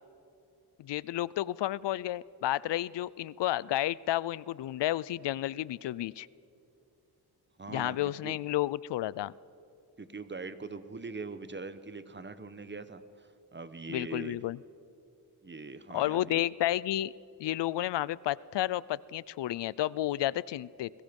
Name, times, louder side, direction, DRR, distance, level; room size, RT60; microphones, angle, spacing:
voice 1, 0.8-6.3 7.7-9.3 13.9-14.6 15.9-17.1 17.4-20.9, left 14 dB, 85° left, 22 dB, 0.5 m, -31 dB
voice 2, 7.6-8.4 10.0-14.4 15.4-16.4, right 3 dB, 25° right, 12 dB, 1.1 m, -42 dB
29.5 x 22.0 x 5.3 m, 2.7 s
wide cardioid pair, 100°, 41 cm